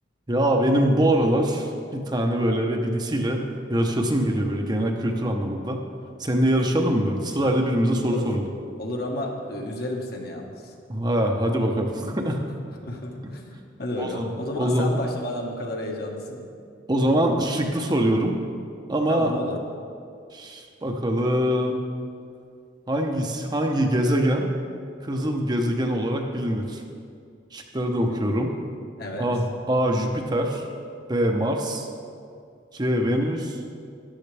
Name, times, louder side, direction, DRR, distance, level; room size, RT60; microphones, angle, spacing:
voice 1, 0.3-3.4 3.7-5.8 6.2-8.5 10.9-12.4 14.0-14.3 14.6-14.9 16.9-18.4 18.9-19.3 20.3-21.8 22.9-24.5 25.0-26.8 27.5-28.5 29.2-30.6 31.1-31.9 32.7-33.6, equal, 25° right, 2 dB, 0.8 m, -23 dB
voice 2, 7.9-8.2 8.8-10.7 12.8-13.5 13.8-16.4 19.1-19.6 28.0-28.2 29.0-29.3, left 1 dB, 60° left, 0 dB, 1.5 m, -32 dB
13.5 x 11.0 x 3.4 m, 2.3 s
head